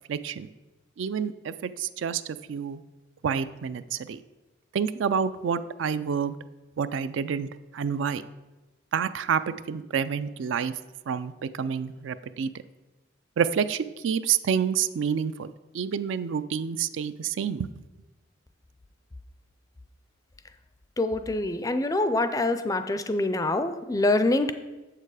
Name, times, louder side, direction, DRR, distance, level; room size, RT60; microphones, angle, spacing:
voice 1, 0.1-0.5 1.0-2.8 3.2-4.2 4.7-6.4 6.8-8.2 8.9-10.7 11.1-12.5 13.4-17.7, right 7 dB, 70° right, 14 dB, 0.4 m, -28 dB
voice 2, 21.0-24.5, left 2 dB, 20° left, 10 dB, 0.4 m, -25 dB
7.3 x 6.7 x 4.8 m, 1.1 s
head